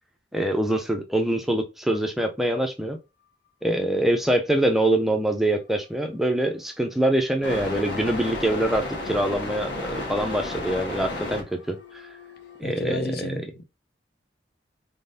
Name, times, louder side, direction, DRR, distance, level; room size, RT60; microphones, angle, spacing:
voice 1, 0.3-3.0 3.6-11.8 12.6-13.4, right 1 dB, ahead, 0.4 m, -24 dB
sound 1, 7.4-12.6, left 2 dB, 80° left, 1.5 m, -33 dB
voice 2, 12.6-13.6, left 1 dB, 60° left, 0.7 m, -31 dB
4.1 x 3.7 x 2.7 m
head